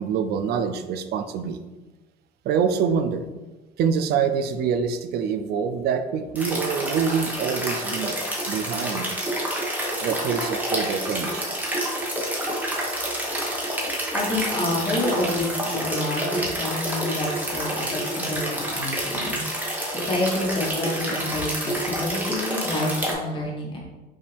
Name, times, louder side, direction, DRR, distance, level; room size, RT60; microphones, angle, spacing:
voice 1, 0.0-1.6 2.4-3.2 3.8-8.2 8.5-9.1 10.0-11.5, right 6 dB, 70° right, 9 dB, 0.4 m, -25 dB
sound 1, 6.4-23.1, right 1 dB, 10° right, 1.0 m, -28 dB
voice 2, 14.1-19.4 19.9-23.8, left 1 dB, 30° left, -3 dB, 1.4 m, -28 dB
5.4 x 2.5 x 3.3 m, 1.2 s
cardioid pair, 110°, 17 cm